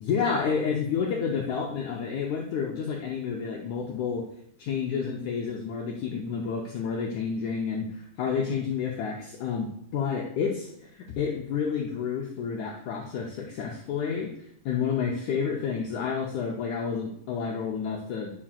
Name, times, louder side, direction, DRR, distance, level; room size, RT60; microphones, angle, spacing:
voice 1, 0.0-4.2 4.6-14.3 14.6-18.3, left 6 dB, 85° left, -1 dB, 1.6 m, -30 dB
9.8 x 7.3 x 2.4 m, 0.71 s
omnidirectional pair, 4.3 m